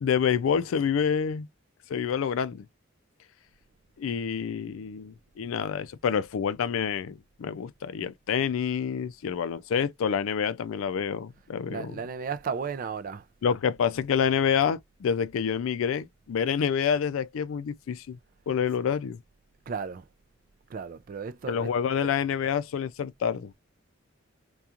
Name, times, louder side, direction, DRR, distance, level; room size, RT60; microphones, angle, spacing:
voice 1, 0.0-1.5 1.9-2.7 4.0-11.9 13.4-18.2 18.5-19.2 21.5-23.5, left 7 dB, 80° left, 0.3 m, -27 dB
voice 2, 11.7-13.3 19.7-20.0 20.7-21.7 22.0-22.1, right 6 dB, 45° right, 0.3 m, -34 dB
2.3 x 2.3 x 2.8 m
head